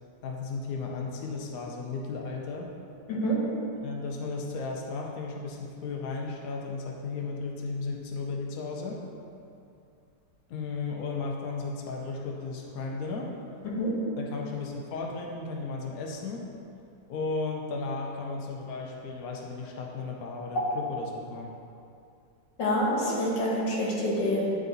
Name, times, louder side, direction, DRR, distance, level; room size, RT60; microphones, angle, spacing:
voice 1, 0.2-2.7 3.8-9.0 10.5-13.3 14.2-16.5 17.1-21.5, left 4 dB, 60° left, 0 dB, 1.1 m, -35 dB
voice 2, 3.1-3.5 13.6-14.0 22.6-24.5, equal, 80° left, -4 dB, 2.0 m, -27 dB
9.8 x 4.0 x 4.0 m, 2.5 s
omnidirectional pair, 1.9 m